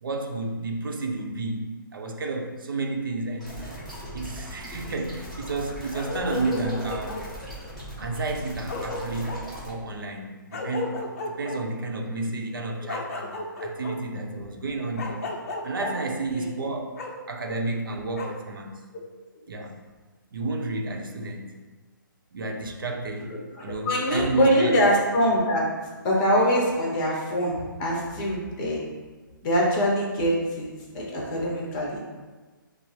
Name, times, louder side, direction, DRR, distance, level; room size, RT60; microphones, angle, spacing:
voice 1, 0.0-3.5 4.1-7.3 8.0-15.2 15.6-17.0 17.3-18.8 19.5-19.8 20.3-21.6 22.3-23.3 23.6-24.8, right 3 dB, 75° right, 3 dB, 0.6 m, -31 dB
sound 1, 3.4-9.7, equal, ahead, 1.1 m, -39 dB
Bark, 5.9-7.3 8.3-8.4 8.7-9.4 10.5-11.6 12.9-13.9 15.0-15.9 17.0-17.1 18.1-18.3, left 3 dB, 40° left, 0.6 m, -33 dB
voice 2, 23.3-25.7 26.0-28.8 29.4-30.7 30.9-32.0, equal, 25° left, -3 dB, 0.9 m, -24 dB
6.0 x 2.0 x 3.3 m, 1.3 s
hypercardioid pair, 155°, 11 cm